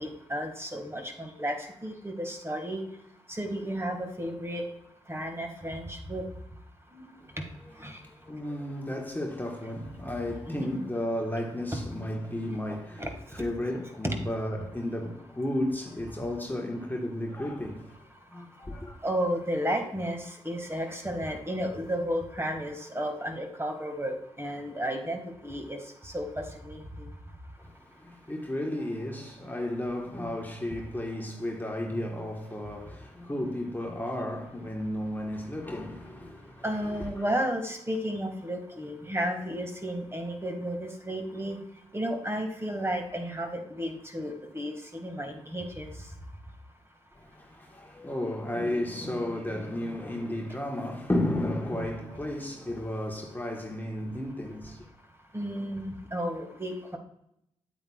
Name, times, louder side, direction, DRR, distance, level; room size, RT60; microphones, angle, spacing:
voice 1, 0.0-2.8 3.3-4.6 5.1-6.2 6.9-7.1 7.4-7.5 7.8-8.0 10.5-10.8 11.7-11.8 13.0-13.1 13.4-13.5 14.0-14.2 19.0-20.2 20.4-25.8 26.0-26.3 26.6-27.1 36.6-41.6 41.9-45.9 55.3-57.0, equal, 20° right, 1.8 m, -33 dB
voice 2, 8.0-13.1 13.4-17.9 18.3-19.0 27.6-37.2 47.1-54.9, left 1 dB, 15° left, 1.3 m, -33 dB
8.7 x 8.4 x 2.4 m
supercardioid pair, 50°, 12 cm